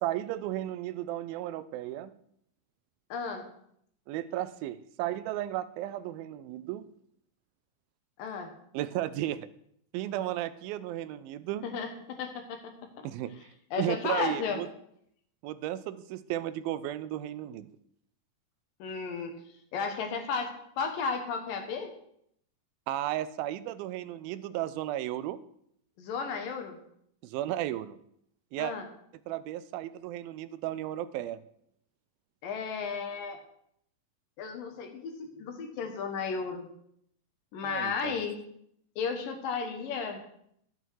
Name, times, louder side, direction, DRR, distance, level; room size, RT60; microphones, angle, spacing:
voice 1, 0.0-2.1 4.1-6.9 8.7-9.5 9.9-11.7 13.0-13.3 13.8-14.7 15.4-17.7 22.9-25.4 27.2-28.0 28.5-28.7 29.3-31.4 37.6-38.2, right 13 dB, 90° right, 14 dB, 2.4 m, -34 dB
voice 2, 3.1-3.5 8.2-8.5 11.6-13.1 13.7-14.6 18.8-19.3 19.7-21.9 26.0-26.8 28.6-28.9 32.4-33.4 34.4-36.7 37.5-38.4 39.0-40.2, left 5 dB, 75° left, 5 dB, 2.9 m, -34 dB
12.0 x 7.9 x 4.7 m, 0.72 s
omnidirectional pair, 4.1 m